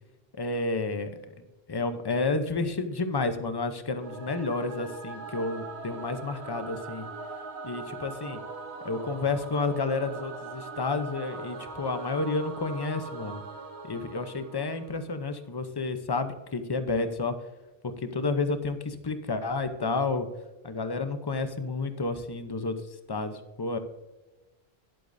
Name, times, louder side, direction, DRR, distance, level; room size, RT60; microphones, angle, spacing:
voice 1, 0.4-1.1 1.7-7.0 7.6-8.4 8.8-13.4 13.8-17.3 17.8-20.3 20.6-22.8 23.1-23.8, left 3 dB, 25° left, 9 dB, 0.7 m, -30 dB
Singing / Musical instrument, 3.9-15.2, right 4 dB, 80° right, 1.4 m, -41 dB
19.0 x 8.3 x 2.7 m, 1.1 s
omnidirectional pair, 1.1 m